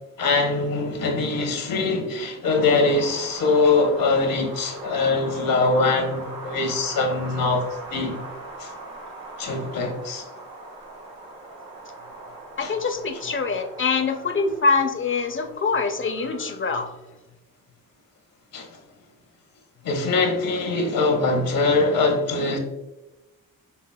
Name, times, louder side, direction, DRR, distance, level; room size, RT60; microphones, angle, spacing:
voice 1, 0.2-7.6 7.9-8.2 8.6-8.7 9.4-10.2 12.6-12.7 18.5-18.7 19.8-22.6, left 3 dB, 75° left, 3 dB, 1.0 m, -22 dB
Wind, 2.4-16.5, right 2 dB, 85° right, 1.1 m, -40 dB
voice 2, 12.6-16.9, left 4 dB, 35° left, 7 dB, 0.6 m, -24 dB
5.7 x 3.5 x 2.2 m, 0.99 s
cardioid pair, 60°, 34 cm